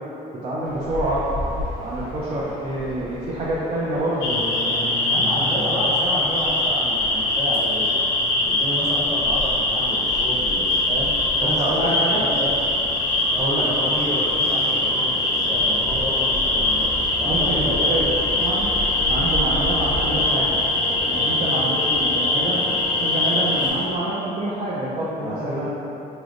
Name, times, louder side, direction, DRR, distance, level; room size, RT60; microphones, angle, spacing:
voice 1, 0.4-1.3 1.8-5.0 5.6-5.7 11.4-12.2 13.4-13.9 17.2-18.7 19.1-20.6 20.9-22.6 23.0-25.8, right 1 dB, 35° right, -8 dB, 0.6 m, -27 dB
sound 1, 0.6-20.6, left 1 dB, 55° right, 1.3 m, -35 dB
sound 2, 4.2-23.7, left 2 dB, 85° left, 0.7 m, -22 dB
voice 2, 5.1-8.0 8.4-11.1 11.4-12.6 13.3-16.9 17.2-18.4 25.2-25.7, equal, 15° right, -8 dB, 1.1 m, -30 dB
sound 3, 9.2-24.0, left 1 dB, 30° left, 0.5 m, -36 dB
4.1 x 3.2 x 2.5 m, 2.9 s
cardioid pair, 110°, 17 cm